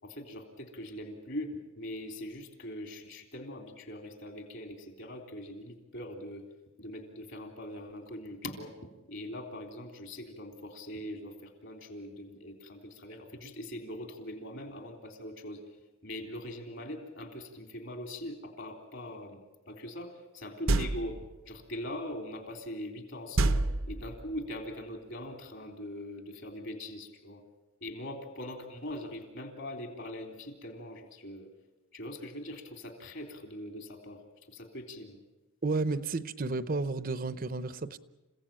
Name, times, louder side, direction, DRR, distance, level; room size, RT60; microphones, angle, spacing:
voice 1, 0.0-6.5 6.8-15.6 16.0-19.4 19.7-27.4 27.8-31.5 31.9-34.2 34.5-35.2, left 1 dB, 60° left, 3.5 m, -42 dB
sound 1, 20.7-21.3 23.4-24.4, right 2 dB, 70° right, 0.8 m, -28 dB
voice 2, 35.6-38.0, right 3 dB, 40° right, 0.7 m, -32 dB
29.0 x 16.5 x 8.9 m
head